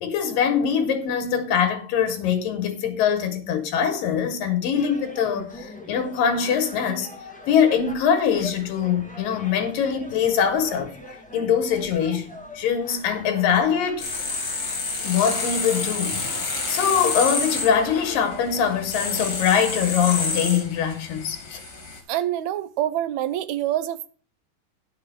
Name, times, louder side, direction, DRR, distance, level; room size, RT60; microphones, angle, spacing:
voice 1, 0.0-7.1 7.5-10.9 11.3-14.0 15.0-21.6, left 7 dB, 90° left, 3.2 m, -23 dB
sound 1, 4.7-20.2, left 1 dB, 5° left, 0.6 m, -43 dB
sound 2, 14.0-22.0, left 4 dB, 45° left, 3.3 m, -29 dB
voice 2, 22.1-24.1, right 12 dB, 75° right, 1.7 m, -26 dB
10.5 x 6.6 x 5.7 m
omnidirectional pair, 3.9 m